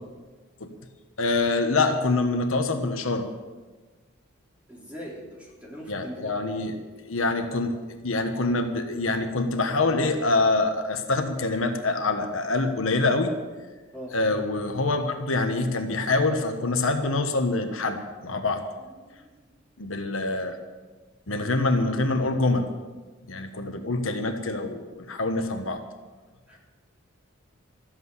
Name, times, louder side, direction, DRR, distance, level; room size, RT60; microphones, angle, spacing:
voice 1, 1.2-3.3 5.9-6.8 7.1-13.3 14.1-18.0 18.2-18.6 19.8-20.6 21.3-22.7 23.3-25.8, left 2 dB, 80° left, 6 dB, 1.3 m, -25 dB
voice 2, 4.7-6.4 13.9-14.2 19.0-19.5 20.2-20.3 26.5-26.6, equal, 5° right, -4 dB, 3.4 m, -41 dB
13.0 x 7.9 x 9.6 m, 1.3 s
head